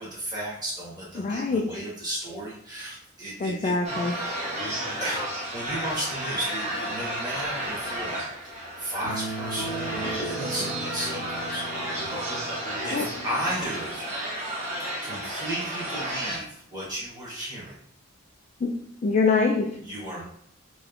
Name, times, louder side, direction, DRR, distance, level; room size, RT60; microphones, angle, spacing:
voice 1, 0.0-3.7 4.1-4.3 5.0-11.7 11.9-12.2 12.8-14.2 15.0-17.7 19.8-20.2, right 1 dB, 20° right, -8 dB, 1.5 m, -34 dB
voice 2, 1.2-1.8 3.4-4.1 12.9-13.1 18.6-18.7 19.0-19.7, left 4 dB, 35° left, 1 dB, 0.3 m, -24 dB
sound 1, 3.8-16.4, right 1 dB, 35° right, 1.1 m, -32 dB
sound 2, 9.0-12.6, right 2 dB, 5° right, 1.2 m, -36 dB
3.2 x 3.0 x 2.4 m, 0.68 s
head